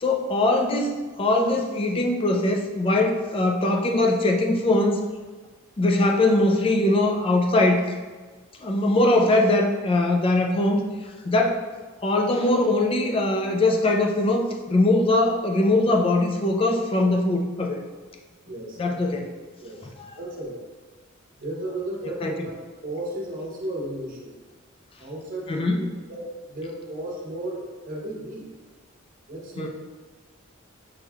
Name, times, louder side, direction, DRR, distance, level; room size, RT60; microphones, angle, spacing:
voice 1, 0.0-5.0 5.8-7.8 8.6-10.8 11.3-11.6 12.0-17.8 18.8-19.3 22.2-22.3 25.5-25.9 29.6-29.7, left 2 dB, 25° left, 2 dB, 0.4 m, -21 dB
voice 2, 18.5-19.0 19.6-19.9 20.2-20.6 21.3-22.6 22.8-24.3 25.0-28.5 29.3-29.7, right 1 dB, 40° right, -2 dB, 0.8 m, -34 dB
6.1 x 3.0 x 2.3 m, 1.4 s
head